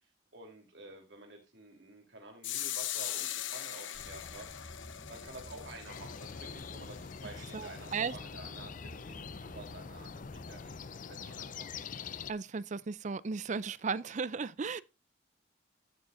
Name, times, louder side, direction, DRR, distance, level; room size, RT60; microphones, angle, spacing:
voice 1, 0.3-4.8 5.1-11.8, right 2 dB, 70° right, 3.2 m, -51 dB
sound 1, 2.4-8.1, left 12 dB, 85° left, 0.8 m, -41 dB
sound 2, 3.9-10.9, left 1 dB, 30° left, 0.9 m, -52 dB
sound 3, 5.9-12.3, left 6 dB, 45° left, 0.5 m, -45 dB
voice 2, 7.5-8.1 12.3-14.8, right 5 dB, 40° right, 0.5 m, -35 dB
14.0 x 6.8 x 2.6 m
head